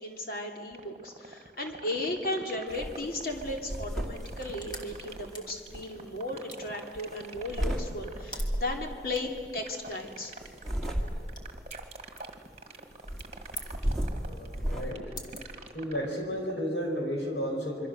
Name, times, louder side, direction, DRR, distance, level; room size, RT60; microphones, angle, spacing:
voice 1, 0.0-10.3, left 1 dB, 55° left, 2 dB, 2.7 m, -35 dB
sound 1, 0.7-16.7, right 3 dB, 40° right, 1.6 m, -45 dB
sound 2, 2.7-3.0 3.3-5.8 6.9-7.8 8.3-8.8 10.4-11.5 13.0-14.9, equal, ahead, 2.1 m, -33 dB
sound 3, 4.1-16.2, left 1 dB, 25° left, 2.1 m, -50 dB
voice 2, 14.3-15.0 15.7-17.9, equal, 80° left, 1 dB, 5.6 m, -33 dB
27.0 x 23.5 x 6.6 m, 2.1 s
head